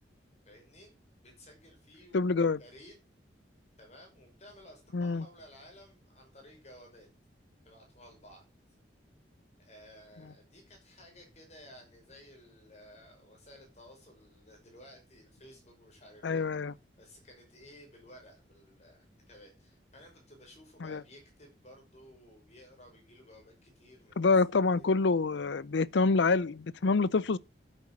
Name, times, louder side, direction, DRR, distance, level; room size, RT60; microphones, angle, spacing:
voice 1, 0.5-0.9 1.2-3.0 3.8-7.1 7.6-8.4 9.6-16.4 17.0-24.9, equal, 35° left, 5.6 m, -55 dB
voice 2, 2.1-2.6 4.9-5.3 16.2-16.7 20.8-21.0 24.2-27.4, left 4 dB, 80° left, 0.6 m, -26 dB
9.9 x 8.1 x 6.1 m
head